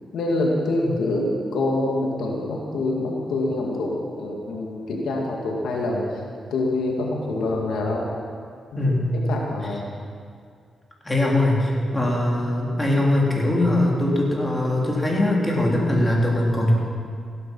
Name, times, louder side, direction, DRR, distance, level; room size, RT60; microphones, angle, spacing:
voice 1, 0.1-6.2 6.5-8.1 8.7-8.8 9.1-9.8, left 2 dB, 85° left, -1 dB, 2.1 m, -25 dB
voice 2, 8.8-9.2 11.0-16.7, left 1 dB, 15° left, -3 dB, 3.8 m, -21 dB
17.0 x 12.5 x 5.6 m, 2.2 s
cardioid pair, 80°, 0 cm